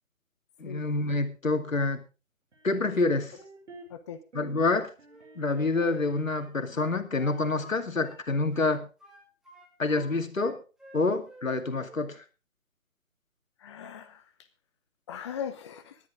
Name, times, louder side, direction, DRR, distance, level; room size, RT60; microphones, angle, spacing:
voice 1, 0.6-2.0 2.6-3.3 4.3-4.9 5.4-8.9 9.8-10.6 10.9-12.2, left 3 dB, 80° left, 8 dB, 2.4 m, -27 dB
sound 1, 2.5-4.0 4.3-4.7 5.0-6.4 6.7-7.7, right 1 dB, 65° right, 6.1 m, -49 dB
voice 2, 3.9-4.2 13.6-14.2 15.1-16.0, left 8 dB, 20° left, 10 dB, 0.8 m, -39 dB
Wind instrument woodwind instrument, 5.1-8.2 8.5-10.1 10.3-11.5 11.7-12.0, equal, ahead, 2.3 m, -52 dB
19.5 x 11.0 x 3.6 m, 0.32 s
figure-of-eight pair, 150°, 39 cm